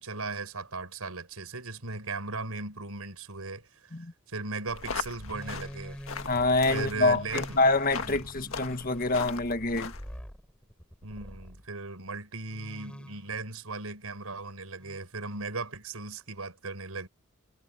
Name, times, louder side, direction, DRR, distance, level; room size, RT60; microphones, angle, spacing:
voice 1, 0.0-3.9 4.3-6.0 6.7-7.7 8.0-8.2 11.0-17.1, right 3 dB, 80° right, 4.9 m, -37 dB
sound 1, 4.7-10.2, left 4 dB, 65° left, 1.8 m, -39 dB
sound 2, 5.0-11.7 12.5-13.5 14.8-15.0, equal, 5° left, 5.6 m, -46 dB
voice 2, 6.3-9.9, left 3 dB, 40° left, 1.6 m, -26 dB
head